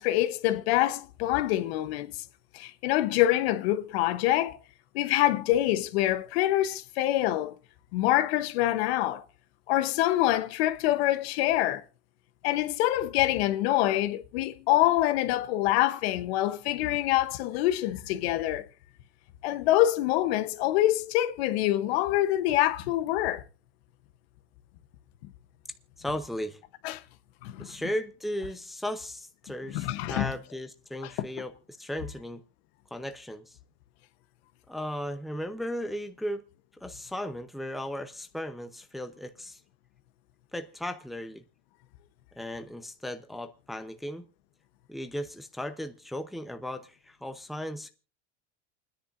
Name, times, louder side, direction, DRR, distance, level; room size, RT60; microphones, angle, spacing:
voice 1, 0.0-2.2 2.5-4.6 4.9-7.6 7.9-9.2 9.7-11.8 12.4-18.7 19.4-23.4 26.8-27.0 27.4-27.8 29.7-30.3 31.2-31.3, left 14 dB, 75° left, 0.9 m, -25 dB
voice 2, 26.0-26.6 27.6-31.5 31.8-32.4 32.9-33.6 34.7-36.4 36.7-39.6 40.5-41.4 42.4-44.3 44.9-47.9, equal, ahead, 0.7 m, -36 dB
28.5 x 10.0 x 2.5 m
supercardioid pair, 135°, 32 cm